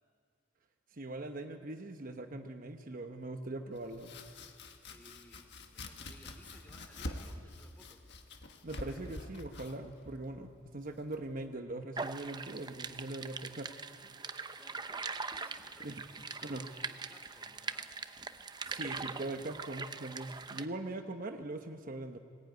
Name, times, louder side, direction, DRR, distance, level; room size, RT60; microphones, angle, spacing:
voice 1, 0.9-4.2 8.6-13.7 15.8-16.0 16.4-16.6 18.6-22.2, right 2 dB, 45° right, 6 dB, 1.0 m, -41 dB
Domestic sounds home sounds, 3.7-11.5, left 2 dB, 60° left, 1.6 m, -47 dB
voice 2, 4.8-8.1 14.6-15.0 15.3-18.0, equal, 10° left, 5 dB, 2.5 m, -60 dB
sound 1, 12.0-20.7, right 4 dB, 20° right, 0.7 m, -42 dB
20.0 x 18.0 x 9.3 m, 2.1 s
head